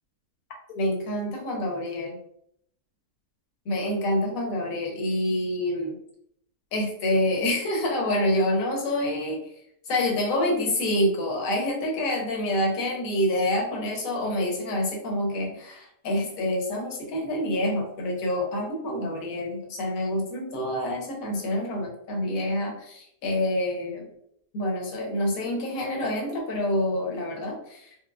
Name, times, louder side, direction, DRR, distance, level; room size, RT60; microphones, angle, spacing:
voice 1, 0.8-2.2 3.7-6.0 6.7-9.4 9.9-24.1 24.5-28.0, left 1 dB, 65° left, 0 dB, 1.2 m, -27 dB
4.8 x 2.0 x 2.2 m, 0.71 s
omnidirectional pair, 1.7 m